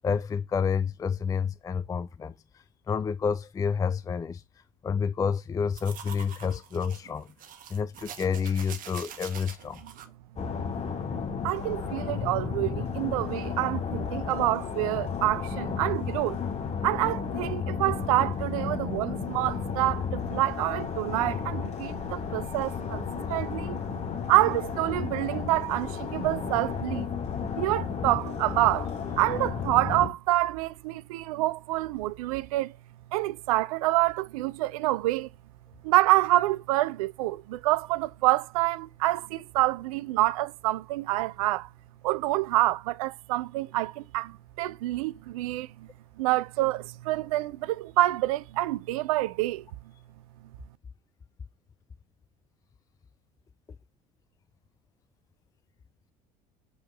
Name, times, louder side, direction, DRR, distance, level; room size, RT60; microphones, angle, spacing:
voice 1, 0.0-2.3 2.9-4.4 4.8-7.3 7.7-9.8, left 6 dB, 15° left, 0.4 m, -29 dB
sound 1, 5.7-10.1, right 8 dB, 45° right, 1.3 m, -44 dB
sound 2, 10.4-30.1, left 6 dB, 35° left, 2.0 m, -33 dB
voice 2, 11.4-16.4 16.8-23.8 24.3-27.1 27.6-28.9 29.2-32.7 33.1-35.3 35.8-41.7 42.0-45.9 46.2-49.6, right 17 dB, 65° right, 0.5 m, -27 dB
7.0 x 4.6 x 3.8 m
figure-of-eight pair, 60°, 20 cm